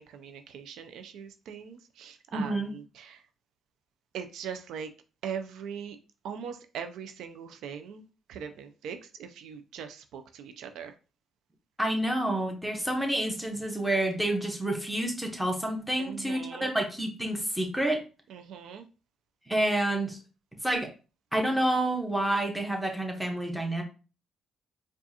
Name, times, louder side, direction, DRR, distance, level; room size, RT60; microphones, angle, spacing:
voice 1, 0.0-3.2 4.1-4.9 5.2-6.0 6.2-8.0 8.3-10.9 16.0-16.7 18.3-18.9, right 7 dB, 80° right, 8 dB, 0.4 m, -40 dB
voice 2, 2.3-2.7 11.8-18.0 19.5-20.2 20.6-20.9 21.3-23.8, right 1 dB, 5° right, 1 dB, 1.1 m, -28 dB
4.6 x 2.4 x 2.8 m, 0.33 s
cardioid pair, 90°, 0 cm